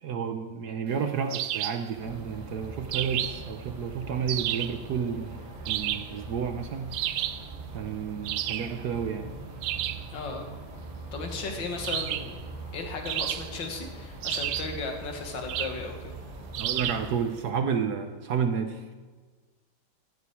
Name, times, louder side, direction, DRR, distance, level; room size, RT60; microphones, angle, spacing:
voice 1, 0.0-7.0 7.7-9.3 16.6-18.8, right 6 dB, 60° right, 7 dB, 1.1 m, -31 dB
sound 1, 1.3-1.9 2.9-3.5 4.3-4.8 5.7-6.2 6.9-7.5 8.2-8.8 9.6-10.1 11.8-12.4 13.1-13.7 14.2-14.8 15.5-15.8 16.5-17.1, right 12 dB, 85° right, 1.5 m, -31 dB
sound 2, 1.9-17.2, right 2 dB, 15° right, 4.9 m, -42 dB
voice 2, 10.1-10.5 11.1-12.4 12.7-16.2, left 4 dB, 60° left, 3 dB, 2.4 m, -35 dB
15.5 x 10.5 x 4.7 m, 1.4 s
omnidirectional pair, 2.4 m